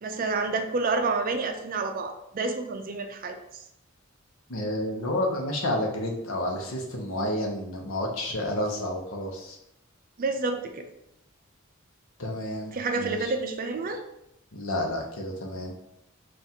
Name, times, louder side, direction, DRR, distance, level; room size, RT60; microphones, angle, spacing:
voice 1, 0.0-3.4 10.2-10.9 12.7-14.0, right 3 dB, 45° right, 5 dB, 0.4 m, -29 dB
voice 2, 4.5-9.6 12.2-13.3 14.5-15.7, left 1 dB, 80° left, 2 dB, 0.8 m, -30 dB
3.6 x 2.5 x 4.2 m, 0.82 s
head